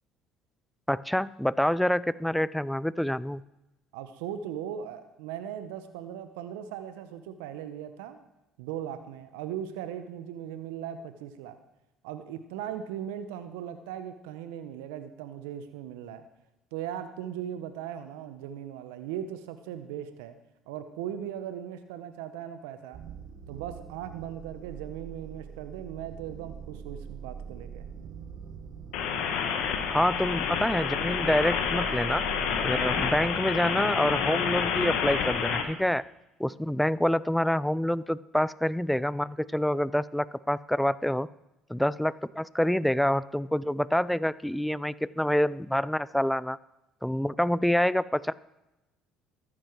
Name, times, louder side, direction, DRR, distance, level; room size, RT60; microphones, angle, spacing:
voice 1, 0.9-3.4 29.9-32.2 32.6-36.0 36.4-41.3 41.7-46.6 47.0-48.3, left 1 dB, 5° left, 19 dB, 0.5 m, -27 dB
voice 2, 3.9-8.2 8.6-11.6 12.0-16.2 16.7-20.3 20.7-23.0 23.5-27.9, right 10 dB, 80° right, 10 dB, 0.9 m, -38 dB
sound 1, 22.9-33.3, right 7 dB, 60° right, 1.3 m, -43 dB
sound 2, 28.9-35.6, left 7 dB, 75° left, 1.6 m, -29 dB
14.0 x 11.0 x 4.6 m, 0.96 s
hypercardioid pair, 65°, 0 cm